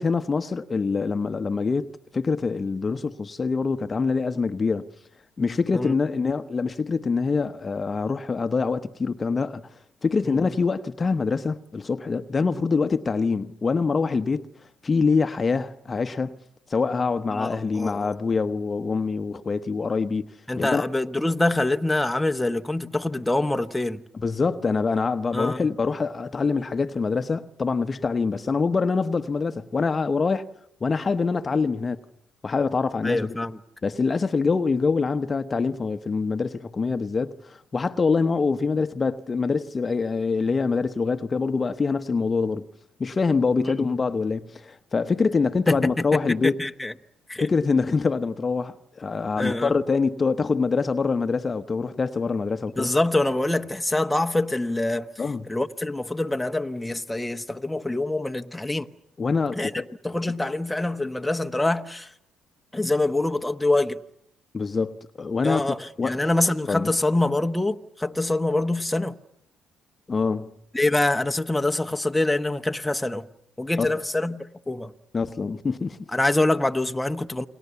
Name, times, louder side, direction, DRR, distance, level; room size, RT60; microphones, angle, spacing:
voice 1, 0.0-4.9 5.4-9.7 10.0-14.5 14.8-16.4 16.7-20.3 20.6-20.9 24.1-30.5 30.8-32.0 32.4-33.4 33.8-42.7 43.0-46.6 47.4-52.9 55.2-55.5 59.2-59.9 64.5-65.7 66.0-66.2 66.7-66.9 70.1-70.5 73.8-73.9 75.1-76.0, left 4 dB, 35° left, 1.1 m, -25 dB
voice 2, 17.3-18.1 20.5-24.0 25.3-25.7 33.0-33.6 43.6-43.9 45.7-46.9 47.3-47.5 49.4-49.7 52.8-55.1 55.5-58.9 59.5-59.7 60.0-62.1 62.7-64.0 65.4-69.1 70.7-73.3 73.6-74.9 76.1-77.5, left 2 dB, 10° left, 1.2 m, -25 dB
29.5 x 22.0 x 7.1 m
supercardioid pair, 65°, 0 cm